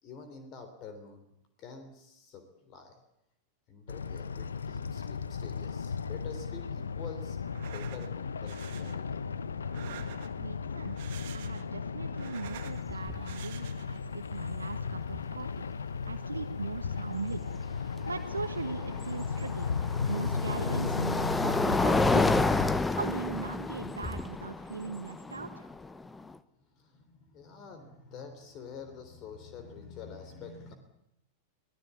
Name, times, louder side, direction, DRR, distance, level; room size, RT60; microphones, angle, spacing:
voice 1, 0.0-1.3 1.6-3.0 3.7-9.2 26.6-30.7, left 5 dB, 35° left, 8 dB, 3.5 m, -47 dB
sound 1, 3.9-22.8, left 5 dB, 70° left, 1.1 m, -36 dB
Male Breath Scared Frozen Loop Stereo, 7.5-8.1 8.5-9.0 9.6-10.5 10.9-11.7 12.0-12.8 13.2-14.0, right 12 dB, 55° right, 1.8 m, -48 dB
voice 2, 10.4-11.0 11.3-15.7 16.1-17.4 18.1-19.7 20.1-22.3 22.9-25.6, right 4 dB, 75° right, 5 dB, 1.5 m, -39 dB
sound 2, 12.5-12.6 12.9-13.3 15.1-15.2 18.2-26.3, left 3 dB, 10° left, 1.1 m, -30 dB
25.5 x 18.0 x 8.4 m, 0.79 s
figure-of-eight pair, 90°, 0 cm